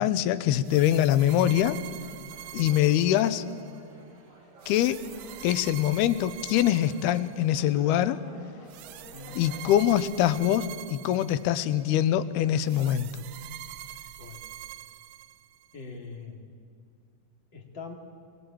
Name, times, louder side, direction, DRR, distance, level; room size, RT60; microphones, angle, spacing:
voice 1, 0.0-1.8 2.5-3.4 4.7-5.0 5.4-8.2 9.4-13.1, left 11 dB, 80° left, 13 dB, 2.8 m, -24 dB
sound 1, 0.6-3.8 4.6-7.7 8.7-11.8 12.7-15.8, right 13 dB, 80° right, 2.8 m, -44 dB
sound 2, 2.0-9.7, right 1 dB, 45° right, 6.2 m, -52 dB
voice 2, 15.7-16.5 17.5-17.9, left 4 dB, 30° left, 2 dB, 3.0 m, -42 dB
25.0 x 22.0 x 8.8 m, 2.2 s
omnidirectional pair, 4.6 m